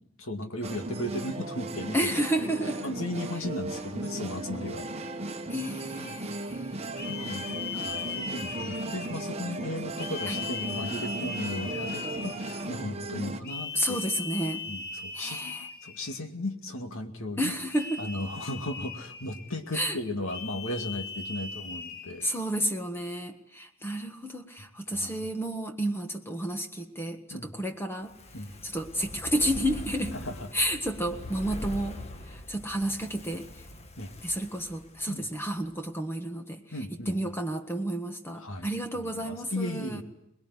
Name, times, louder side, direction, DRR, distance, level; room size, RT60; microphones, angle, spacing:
voice 1, 0.2-2.0 2.8-4.9 6.0-6.3 7.1-14.0 14.7-15.4 15.8-17.5 18.0-22.3 24.9-25.2 27.3-27.5 28.3-28.5 30.1-30.4 34.0-34.1 35.1-35.3 36.7-37.3 38.4-40.0, left 1 dB, 70° left, 6 dB, 2.4 m, -36 dB
sound 1, 0.6-13.4, right 2 dB, 30° right, 1.3 m, -36 dB
voice 2, 1.9-2.9 5.5-6.8 10.3-10.4 13.7-14.6 15.1-15.7 17.4-18.0 19.7-20.0 22.2-28.1 28.6-30.2 30.5-32.0 32.3-33.5 34.2-36.6 37.0-40.0, right 1 dB, 10° left, 5 dB, 1.5 m, -31 dB
sound 2, 6.0-6.3 6.9-9.4 10.0-12.7 13.4-16.2 17.7-19.6 20.3-22.4, left 5 dB, 50° left, 2.2 m, -39 dB
Fire, 28.0-35.4 35.7-35.8, left 1 dB, 30° left, 1.5 m, -42 dB
23.0 x 21.0 x 9.8 m, 0.82 s
head